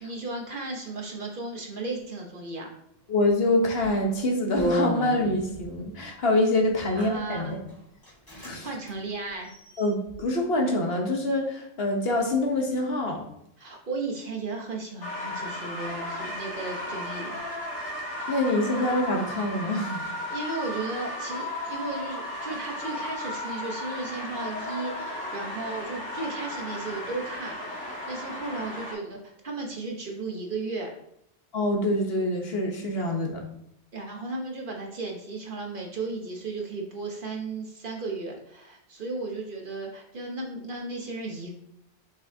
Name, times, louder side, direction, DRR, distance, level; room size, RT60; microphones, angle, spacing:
voice 1, 0.0-2.7 7.0-7.6 8.6-9.5 13.6-17.3 20.3-30.9 33.9-41.5, right 3 dB, 50° right, 1 dB, 1.2 m, -35 dB
voice 2, 3.1-7.6 8.4-8.7 9.8-13.2 18.3-20.1 31.5-33.4, left 1 dB, 60° left, 1 dB, 1.3 m, -25 dB
sound 1, 3.8-4.0 4.6-5.7 6.7-7.1 7.7-7.8 8.0-8.5 8.8-8.9 9.4-10.1, equal, 20° left, 1.9 m, -31 dB
sound 2, 15.0-28.9, left 1 dB, 85° left, 1.9 m, -35 dB
6.5 x 5.5 x 2.8 m, 0.76 s
omnidirectional pair, 1.2 m